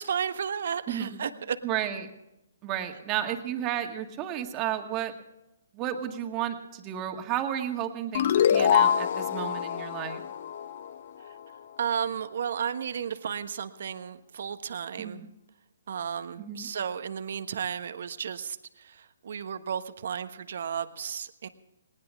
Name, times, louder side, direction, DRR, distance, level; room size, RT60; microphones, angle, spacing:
voice 1, 0.0-1.6 11.2-11.3 11.8-15.3 15.9-21.5, right 7 dB, 60° right, 10 dB, 1.3 m, -33 dB
voice 2, 0.9-1.2 1.6-2.1 2.6-5.1 5.7-10.2 15.0-15.3 16.4-16.7, right 10 dB, 25° right, 4 dB, 2.1 m, -32 dB
sound 1, 8.1-11.4, left 8 dB, 50° left, 0.8 m, -25 dB
20.0 x 19.0 x 3.6 m, 0.88 s
hypercardioid pair, 145°, 0 cm